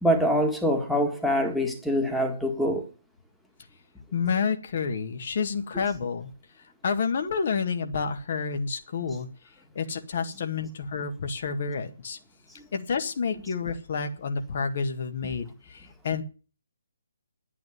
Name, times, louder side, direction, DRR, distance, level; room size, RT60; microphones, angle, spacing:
voice 1, 0.0-2.9, equal, ahead, 1.8 m, -24 dB
voice 2, 4.1-6.3 6.8-9.3 9.8-12.2 12.7-16.2, left 5 dB, 45° left, 1.8 m, -29 dB
11.0 x 8.6 x 9.3 m
figure-of-eight pair, 140°, 0 cm